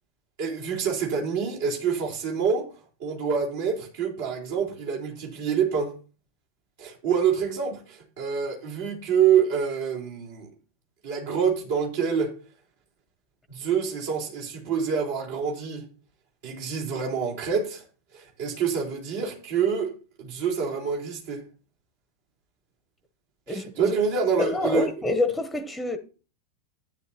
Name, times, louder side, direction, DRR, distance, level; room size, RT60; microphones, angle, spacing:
voice 1, 0.4-2.7 3.0-5.9 6.8-10.5 11.0-12.3 13.5-15.9 16.4-17.8 18.1-19.9 20.2-21.4 23.5-24.9, right 7 dB, 55° right, 4.3 m, -26 dB
voice 2, 24.4-26.0, left 2 dB, 5° left, 1.0 m, -26 dB
13.0 x 10.0 x 3.0 m
figure-of-eight pair, 90°, 0 cm